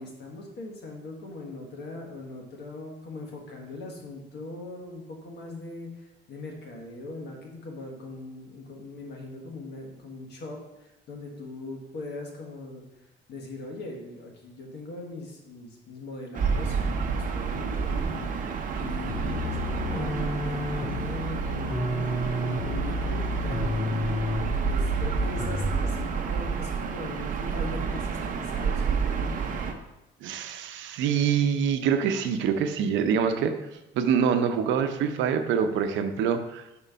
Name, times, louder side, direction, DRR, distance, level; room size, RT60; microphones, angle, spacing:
voice 1, 0.0-12.8 13.3-22.2 22.5-23.9 24.4-29.2, left 2 dB, 60° left, 1 dB, 1.4 m, -40 dB
Gull seagull / Ocean, 16.3-29.7, right 5 dB, 45° right, 0.7 m, -30 dB
sound 1, 19.1-26.2, left 1 dB, 15° left, 0.4 m, -31 dB
voice 2, 30.2-33.5 33.9-36.6, right 7 dB, 80° right, 7 dB, 0.6 m, -25 dB
5.0 x 4.4 x 5.6 m, 0.94 s
cardioid pair, 160°, 19 cm